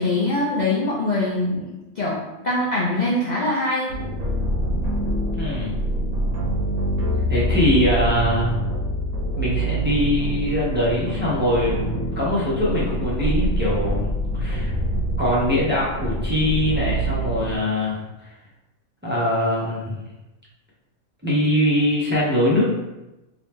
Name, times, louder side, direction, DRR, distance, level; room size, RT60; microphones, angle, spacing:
voice 1, 0.0-3.9, left 2 dB, 60° left, -5 dB, 0.4 m, -23 dB
sound 1, 3.9-17.6, right 1 dB, 75° right, 1.2 m, -25 dB
voice 2, 5.4-5.7 7.3-8.5 9.4-11.9 12.2-14.7 15.2-18.0 19.0-20.0 21.2-22.6, left 1 dB, 10° right, -7 dB, 0.6 m, -22 dB
3.0 x 2.8 x 3.4 m, 1.0 s
omnidirectional pair, 1.5 m